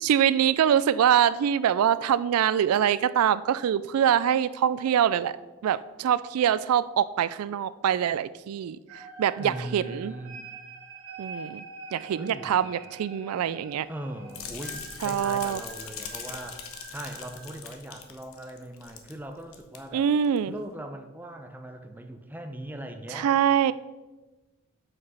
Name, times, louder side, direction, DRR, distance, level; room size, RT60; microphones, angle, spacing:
voice 1, 0.0-5.4 5.6-10.1 11.2-11.6 11.9-13.9 15.0-15.6 19.9-20.5 23.1-23.7, right 9 dB, 80° right, 16 dB, 0.3 m, -24 dB
sound 1, 8.9-17.5, right 3 dB, 65° right, 2.1 m, -45 dB
voice 2, 9.4-10.4 12.1-12.7 13.9-16.6 16.9-20.1 20.5-23.3, right 1 dB, 10° right, 5 dB, 0.7 m, -40 dB
sound 2, 14.3-19.2 19.4-19.8 20.2-20.4, left 7 dB, 70° left, 1.1 m, -41 dB
8.0 x 6.0 x 5.6 m, 1.2 s
head